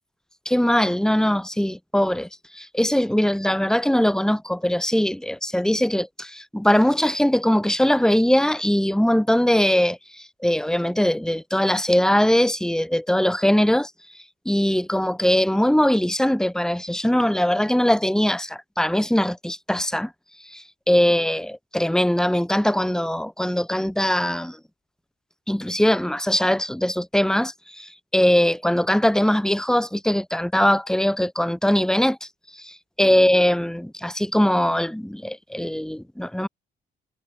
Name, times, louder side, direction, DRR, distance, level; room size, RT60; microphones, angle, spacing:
voice 1, 0.5-20.1 20.4-24.6 25.5-36.5, equal, 5° left, 3.9 m, -21 dB
cardioid pair, 90°, 20 cm